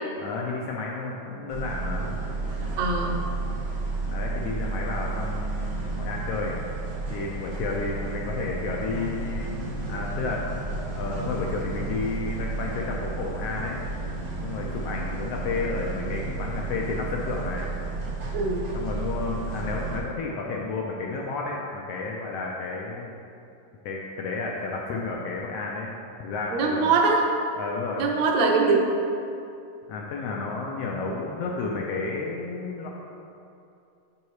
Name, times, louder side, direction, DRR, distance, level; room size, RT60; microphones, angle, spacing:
voice 1, 0.2-2.1 4.1-6.5 7.1-9.5 9.9-10.6 10.9-13.8 14.4-17.7 18.7-23.1 23.8-25.9 26.2-26.9 27.6-28.0 29.9-32.9, left 3 dB, 80° left, -2 dB, 1.4 m, -31 dB
sound 1, 1.5-20.0, right 3 dB, 90° right, 3.0 m, -32 dB
voice 2, 2.8-3.2 18.3-18.7 26.5-27.3 28.0-28.9, right 4 dB, 70° right, 1 dB, 1.8 m, -22 dB
9.7 x 4.7 x 3.2 m, 2.6 s
omnidirectional pair, 3.4 m